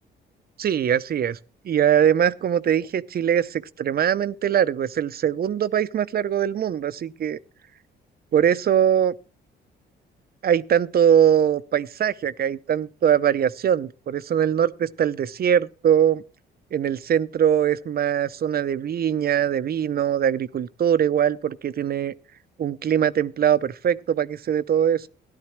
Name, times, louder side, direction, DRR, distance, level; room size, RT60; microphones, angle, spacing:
voice 1, 0.6-1.4 1.6-7.4 8.3-9.1 10.4-16.2 16.7-22.1 22.6-25.1, right 9 dB, 50° right, 0.6 m, -22 dB
14.0 x 11.5 x 3.1 m
cardioid pair, 90°, 20 cm